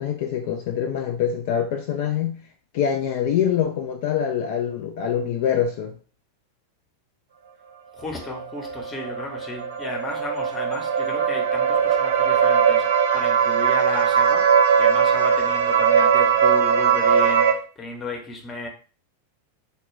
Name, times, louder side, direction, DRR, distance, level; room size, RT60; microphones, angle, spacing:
voice 1, 0.0-2.4 2.7-5.9, left 8 dB, 50° left, 0.3 m, -24 dB
voice 2, 7.9-18.7, left 2 dB, 20° left, 0.7 m, -34 dB
sound 1, 8.2-17.5, right 7 dB, 60° right, 0.4 m, -20 dB
2.2 x 2.1 x 3.1 m
figure-of-eight pair, 90°, 0 cm